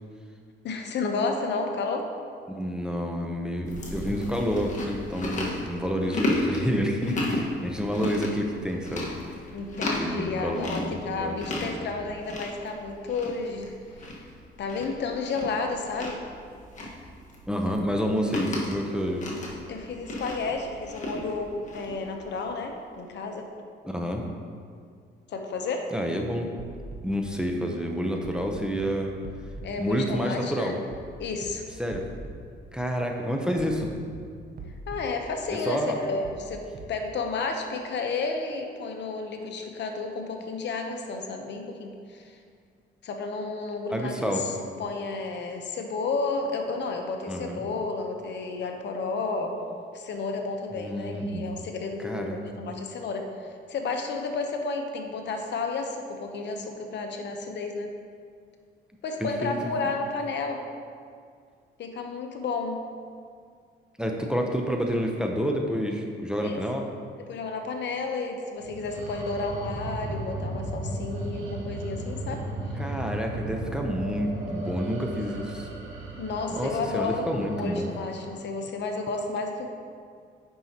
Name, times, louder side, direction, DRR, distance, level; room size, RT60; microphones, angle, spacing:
voice 1, 0.6-2.1 9.5-13.7 14.0-14.3 14.6-16.2 19.7-23.5 25.3-25.9 29.6-30.8 31.2-31.7 34.9-36.6 36.9-42.4 43.0-49.6 49.9-57.9 59.0-60.6 61.8-62.8 66.4-66.6 67.3-72.4 76.2-79.7, left 3 dB, 65° left, 4 dB, 0.8 m, -32 dB
voice 2, 2.5-9.1 9.9-11.4 11.7-11.9 17.5-19.3 23.8-24.2 25.9-26.5 27.0-29.1 29.8-30.7 31.8-32.0 32.7-33.9 35.7-36.0 43.9-44.4 47.3-47.6 50.8-51.5 52.0-52.4 59.2-59.5 64.0-66.9 72.8-75.7 76.5-77.9, equal, 5° right, 1 dB, 0.7 m, -29 dB
Chewing mastication, 3.7-22.6, left 1 dB, 40° left, 1.4 m, -34 dB
sound 1, 26.6-27.0 28.2-28.4 28.7-28.9 29.2-29.7 30.9-31.1 31.4-31.5 31.9-32.4 33.6-33.8 34.1-34.2 34.6-35.0 36.2-36.4 36.7-36.9, right 3 dB, 50° right, 0.9 m, -41 dB
sound 2, 68.6-78.3, right 1 dB, 80° right, 1.3 m, -36 dB
9.1 x 5.4 x 2.9 m, 2.2 s
cardioid pair, 90°, 20 cm